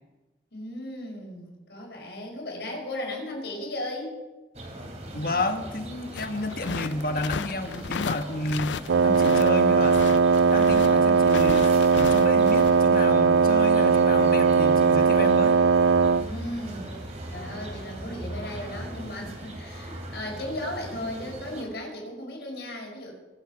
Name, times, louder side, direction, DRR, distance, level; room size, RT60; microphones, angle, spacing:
voice 1, 0.5-4.2 16.1-16.9 17.3-23.1, left 1 dB, 70° left, 0 dB, 5.3 m, -36 dB
sound 1, 4.5-21.6, right 1 dB, 40° right, 2.8 m, -40 dB
voice 2, 5.1-10.0 10.4-15.6, left 2 dB, 55° left, 6 dB, 1.4 m, -31 dB
sound 2, 6.2-9.5 9.8-12.8, left 6 dB, 90° left, 0.4 m, -35 dB
Wind instrument woodwind instrument, 8.9-16.3, right 5 dB, 90° right, 0.4 m, -19 dB
24.0 x 8.1 x 6.0 m, 1.2 s
head